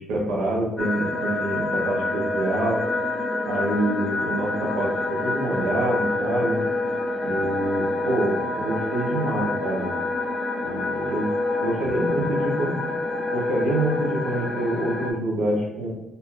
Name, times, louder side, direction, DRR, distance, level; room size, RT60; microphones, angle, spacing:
voice 1, 0.0-2.8 3.4-6.6 7.2-9.9 10.6-11.3 11.6-13.0 13.3-15.9, right 1 dB, 85° right, -1 dB, 1.2 m, -26 dB
sound 1, 0.8-15.1, left 2 dB, 25° left, 1.3 m, -27 dB
4.1 x 4.0 x 2.8 m, 1.0 s
supercardioid pair, 70°, 0 cm